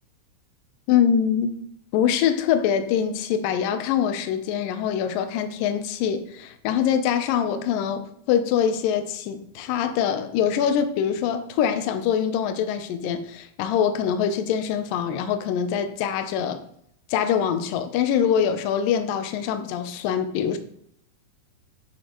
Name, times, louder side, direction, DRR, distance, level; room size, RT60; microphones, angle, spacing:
voice 1, 0.9-1.5 1.9-16.6 17.1-20.6, left 8 dB, 85° left, 1.9 m, -24 dB
10.5 x 8.4 x 3.1 m
omnidirectional pair, 5.0 m